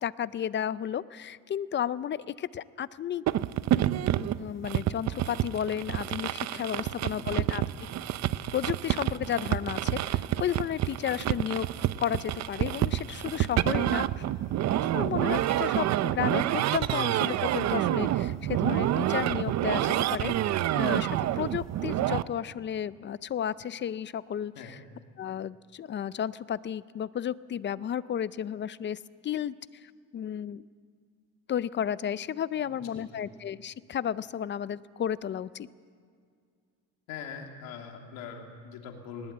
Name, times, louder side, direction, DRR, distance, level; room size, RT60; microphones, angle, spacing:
voice 1, 0.0-3.3 4.0-7.6 8.5-11.7 12.0-14.2 14.9-20.4 20.7-24.8 25.2-30.6 31.5-35.7, left 9 dB, 35° left, 17 dB, 0.5 m, -33 dB
sound 1, 3.3-22.2, right 12 dB, 50° right, 0.6 m, -28 dB
voice 2, 6.8-7.5 14.7-15.0 24.5-24.8 32.6-33.3 37.1-39.3, left 6 dB, 90° left, 2 dB, 2.9 m, -43 dB
21.0 x 19.5 x 8.6 m, 2.2 s
cardioid pair, 125°, 35 cm